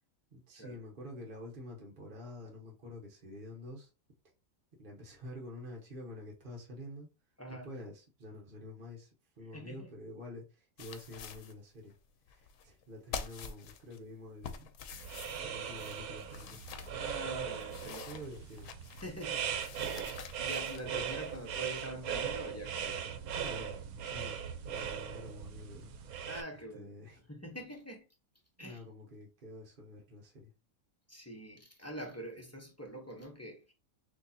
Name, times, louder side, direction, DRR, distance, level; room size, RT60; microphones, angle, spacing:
voice 1, 0.3-3.9 4.8-7.1 7.6-9.1 9.4-11.9 12.3-14.7 15.4-16.6 17.8-18.7 23.3-23.8 24.0-24.4 24.6-25.9 26.5-27.2 28.6-30.5, left 1 dB, 40° right, 1.1 m, -48 dB
voice 2, 7.4-7.7 9.5-9.9 16.9-18.2 19.0-23.2 26.2-26.9 27.3-28.0 28.6-28.8 31.1-33.7, right 1 dB, 15° left, 0.8 m, -45 dB
sound 1, 10.8-11.5 11.9-12.0 12.3-12.8 13.1-14.0 14.4-16.9 17.4-19.2 19.6-21.7, left 6 dB, 70° left, 1.0 m, -46 dB
sound 2, 14.9-26.4, right 8 dB, 80° right, 1.1 m, -39 dB
6.2 x 2.8 x 2.8 m
omnidirectional pair, 1.5 m